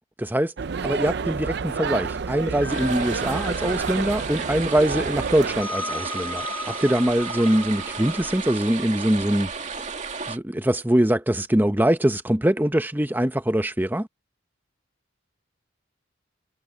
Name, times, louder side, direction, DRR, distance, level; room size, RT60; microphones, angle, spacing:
voice 1, 0.2-0.5 0.8-9.5 10.3-14.1, right 1 dB, 10° right, 0.9 m, -23 dB
sound 1, 0.6-5.6, right 5 dB, 60° right, 0.5 m, -29 dB
sound 2, 2.4-8.4, left 2 dB, 10° left, 3.1 m, -37 dB
sound 3, 2.7-10.4, right 5 dB, 40° right, 2.4 m, -33 dB
head